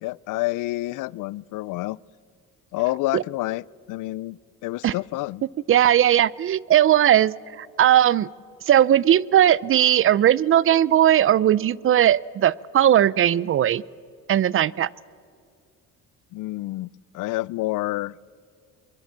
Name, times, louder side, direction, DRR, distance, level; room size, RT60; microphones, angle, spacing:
voice 1, 0.0-2.0 2.7-5.4 16.3-18.1, left 19 dB, 75° left, 24 dB, 0.5 m, -28 dB
voice 2, 5.7-8.3 8.7-13.8 14.3-14.9, right 11 dB, 45° right, 23 dB, 0.5 m, -18 dB
23.5 x 22.5 x 7.4 m, 2.3 s
cardioid pair, 110°, 32 cm